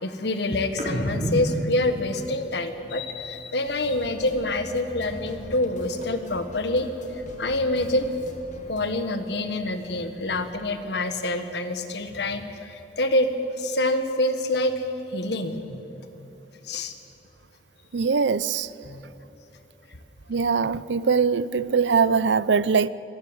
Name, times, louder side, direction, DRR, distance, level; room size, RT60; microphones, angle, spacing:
voice 1, 0.0-6.9 7.4-8.1 8.7-13.3 13.6-15.8 16.2-16.3 16.6-16.9 18.8-19.0, left 1 dB, 65° left, 1.6 m, -26 dB
sound 1, 0.7-4.3 4.6-6.5 6.7-8.6 9.0-10.8, equal, 40° right, 4.8 m, -36 dB
sound 2, 3.8-9.0, equal, 45° left, 2.3 m, -43 dB
voice 2, 17.9-18.7 20.3-22.9, right 5 dB, 80° right, 0.6 m, -22 dB
25.5 x 18.5 x 8.0 m
head